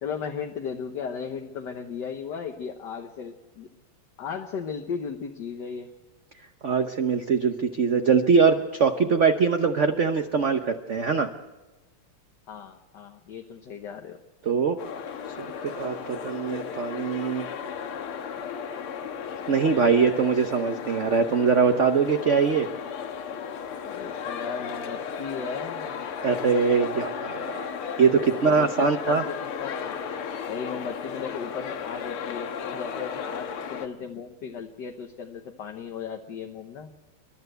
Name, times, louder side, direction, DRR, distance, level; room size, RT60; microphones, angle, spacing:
voice 1, 0.0-3.7 4.2-5.9 12.5-14.2 23.8-26.0 28.2-30.0 30.5-36.9, left 6 dB, 60° left, 4 dB, 1.6 m, -36 dB
voice 2, 6.6-11.3 14.5-14.8 15.6-17.5 19.5-22.7 26.2-27.7 28.0-29.2, right 5 dB, 55° right, 6 dB, 0.8 m, -22 dB
sound 1, 14.8-33.9, left 7 dB, 90° left, 2.1 m, -35 dB
29.5 x 12.0 x 8.0 m, 1.2 s
omnidirectional pair, 2.4 m